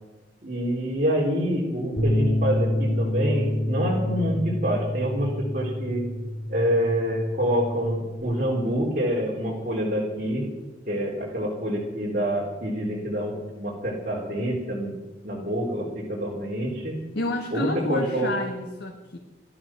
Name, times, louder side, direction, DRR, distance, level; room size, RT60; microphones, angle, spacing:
voice 1, 0.4-6.0 6.5-10.4 10.9-14.9 15.2-16.9 17.5-18.3, equal, 45° right, -4 dB, 3.5 m, -26 dB
Bass guitar, 2.0-8.2, left 1 dB, 50° left, 3.5 m, -27 dB
voice 2, 17.1-19.2, left 1 dB, 85° left, 1 dB, 1.7 m, -29 dB
17.0 x 12.5 x 6.1 m, 1.2 s
head